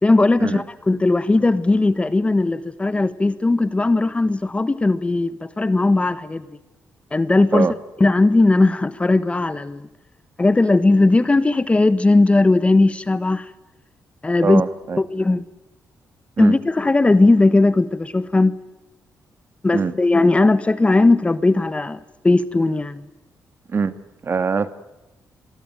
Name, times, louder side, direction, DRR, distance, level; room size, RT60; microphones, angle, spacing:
voice 1, 0.0-6.5 7.1-7.7 8.0-9.9 10.4-13.5 14.2-14.6 15.0-15.4 16.4-18.6 19.6-23.0, left 2 dB, 20° left, 1.3 m, -17 dB
voice 2, 14.4-15.0 16.4-16.6 19.7-19.9 23.7-23.9 24.2-24.7, right 5 dB, 40° right, 1.9 m, -22 dB
28.5 x 22.5 x 9.2 m
cardioid pair, 105°, 6 cm